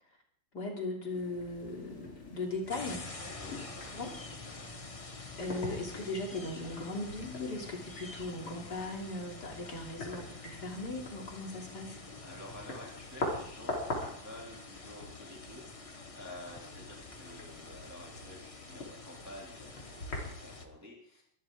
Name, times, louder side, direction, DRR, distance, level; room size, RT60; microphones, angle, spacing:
voice 1, 0.5-3.0 3.9-4.1 5.4-12.0, left 2 dB, 50° left, 0 dB, 3.6 m, -38 dB
sound 1, 1.1-20.6, left 2 dB, 70° left, 4.6 m, -44 dB
sound 2, 2.7-20.7, left 3 dB, 25° left, 0.7 m, -48 dB
voice 2, 3.2-4.2 4.4-4.7 12.2-21.2, left 1 dB, 5° right, -3 dB, 2.8 m, -50 dB
23.0 x 14.0 x 3.8 m, 0.68 s
omnidirectional pair, 2.4 m